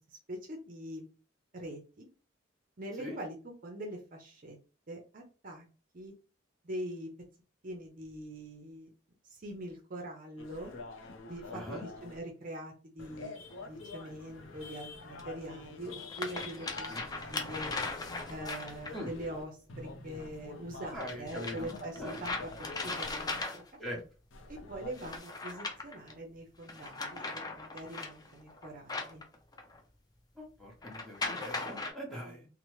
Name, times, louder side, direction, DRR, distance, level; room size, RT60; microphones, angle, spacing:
voice 1, 0.1-1.1 1.5-2.1 2.8-4.6 4.9-5.7 5.9-6.1 6.6-7.1 7.6-8.9 9.2-10.7 11.3-17.7 18.3-23.4 24.5-29.2 32.2-32.4, right 1 dB, 45° right, 2 dB, 0.5 m, -43 dB
sound 1, 10.4-12.2 13.0-19.4 19.7-23.4 24.3-25.2, left 3 dB, 85° left, 0.5 m, -47 dB
voice 2, 11.5-11.8 16.9-17.0 18.9-19.1 20.9-22.2 23.8-24.0 30.4-32.5, equal, ahead, -3 dB, 0.8 m, -42 dB
sound 2, 13.5-13.6 15.2-15.3 15.9-19.1 21.0-23.9 24.9-26.1 26.6-29.8 30.8-31.9, left 3 dB, 20° left, 0.4 m, -39 dB
2.8 x 2.0 x 3.0 m, 0.35 s
head